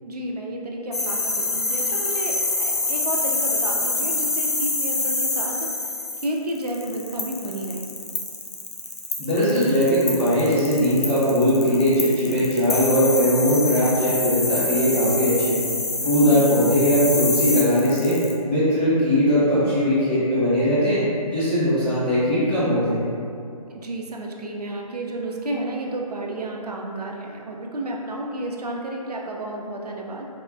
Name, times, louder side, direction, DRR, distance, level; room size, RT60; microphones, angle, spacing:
voice 1, 0.0-7.9 16.2-16.5 23.7-30.3, right 1 dB, 85° right, -1 dB, 0.5 m, -31 dB
sound 1, 0.9-18.3, left 3 dB, 75° left, 0.6 m, -26 dB
voice 2, 9.2-15.6 16.0-21.0 21.3-23.0, equal, 5° left, -15 dB, 0.5 m, -20 dB
3.4 x 2.1 x 2.5 m, 2.5 s
figure-of-eight pair, 150°, 20 cm